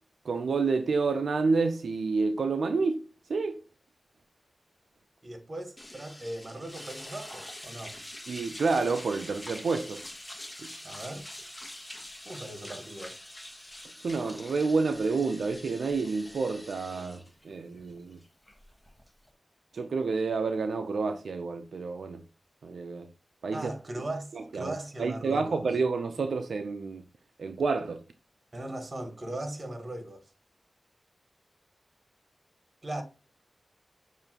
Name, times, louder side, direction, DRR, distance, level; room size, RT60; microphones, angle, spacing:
voice 1, 0.2-3.0 3.3-3.6 8.3-10.0 10.6-10.7 14.0-18.2 19.7-22.2 22.6-23.1 23.4-23.7 24.3-27.0 27.4-28.0, right 4 dB, 90° right, 0.4 m, -29 dB
voice 2, 5.2-8.0 10.8-11.3 12.2-13.2 23.5-25.6 28.5-30.2 32.8-33.0, right 1 dB, 45° right, 1.3 m, -38 dB
sound 1, 5.8-19.3, left 1 dB, 20° left, 1.2 m, -45 dB
6.6 x 2.7 x 2.9 m
cardioid pair, 50°, 0 cm